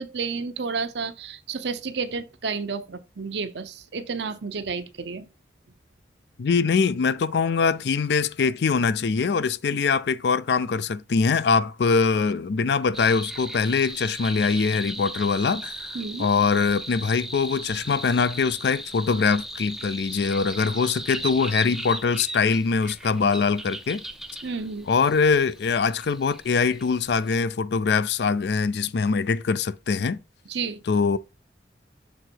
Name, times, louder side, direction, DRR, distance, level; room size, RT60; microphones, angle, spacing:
voice 1, 0.0-5.3 15.9-16.3 24.4-24.9 30.5-30.8, right 4 dB, 75° right, 0.7 m, -31 dB
voice 2, 6.4-15.9 16.2-24.0 24.9-30.2 30.9-31.2, left 5 dB, 70° left, 0.4 m, -23 dB
sound 1, 12.9-27.4, right 1 dB, ahead, 0.4 m, -37 dB
6.5 x 3.8 x 4.5 m
head